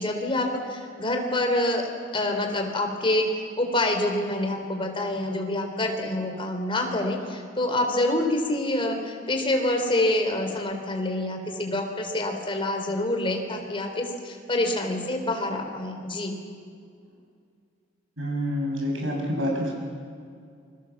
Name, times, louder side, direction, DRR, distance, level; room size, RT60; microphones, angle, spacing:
voice 1, 0.0-1.9 2.1-3.3 3.6-16.4, left 1 dB, 25° left, 4 dB, 3.7 m, -26 dB
voice 2, 18.2-19.7, equal, 80° right, 0 dB, 7.6 m, -27 dB
28.0 x 22.5 x 7.3 m, 2.3 s
head